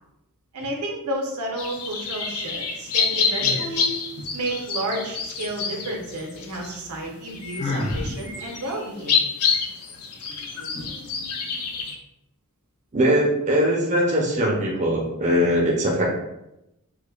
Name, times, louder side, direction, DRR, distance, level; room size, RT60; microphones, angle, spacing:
voice 1, 0.5-3.9 4.3-9.2, right 1 dB, 85° right, -1 dB, 0.8 m, -31 dB
sound 1, 1.6-11.9, left 5 dB, 85° left, 0.5 m, -27 dB
Sigh, 7.6-8.1, left 2 dB, 30° left, 0.3 m, -26 dB
voice 2, 12.9-16.0, equal, 35° right, -2 dB, 0.5 m, -21 dB
4.8 x 2.2 x 2.3 m, 0.87 s
head